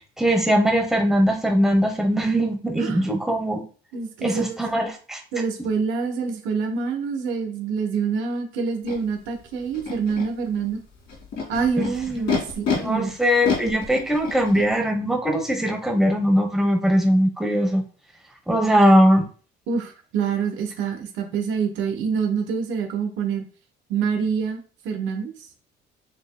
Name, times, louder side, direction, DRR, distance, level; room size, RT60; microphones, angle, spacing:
voice 1, 0.2-3.6 4.2-5.2 11.8-12.4 12.8-17.8 18.5-19.2, equal, ahead, 2 dB, 0.9 m, -20 dB
voice 2, 3.9-4.6 5.3-10.8 11.5-13.1 19.7-23.4 23.9-25.3, right 5 dB, 85° right, 4 dB, 1.0 m, -26 dB
Animal, 8.9-9.0 9.7-10.3 11.1-12.8 13.4-14.7, left 5 dB, 60° left, 2.0 m, -27 dB
6.6 x 2.9 x 2.2 m, 0.39 s
cardioid pair, 130°, 20 cm